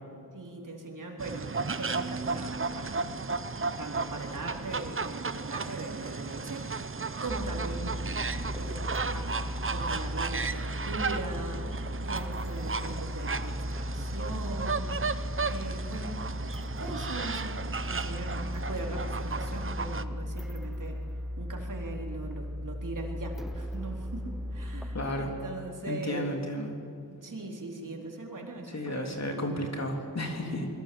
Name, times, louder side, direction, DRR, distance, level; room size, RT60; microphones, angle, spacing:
voice 1, 0.3-3.2 3.8-6.7 7.2-8.8 9.1-9.3 9.7-11.6 12.0-14.9 15.5-16.5 16.8-21.0 21.4-26.4 27.1-29.4, right 2 dB, 60° right, 0 dB, 4.0 m, -40 dB
sound 1, 1.2-20.0, right 4 dB, 35° right, 0.9 m, -34 dB
sound 2, 7.3-25.1, left 1 dB, ahead, 0.7 m, -36 dB
voice 2, 24.9-25.3 25.9-26.7 28.7-30.7, left 1 dB, 50° left, 2 dB, 3.5 m, -33 dB
27.0 x 21.5 x 7.9 m, 2.7 s
wide cardioid pair, 90°, 35 cm